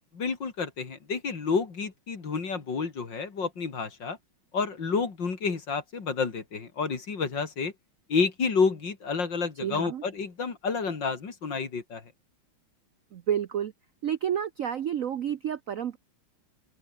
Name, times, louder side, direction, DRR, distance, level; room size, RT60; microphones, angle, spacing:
voice 1, 0.1-4.2 4.5-7.7 8.1-12.0, left 5 dB, 60° left, 3.5 m, -29 dB
voice 2, 9.6-10.0 13.1-13.7 14.0-16.0, right 9 dB, 60° right, 0.9 m, -30 dB
open air
omnidirectional pair, 2.3 m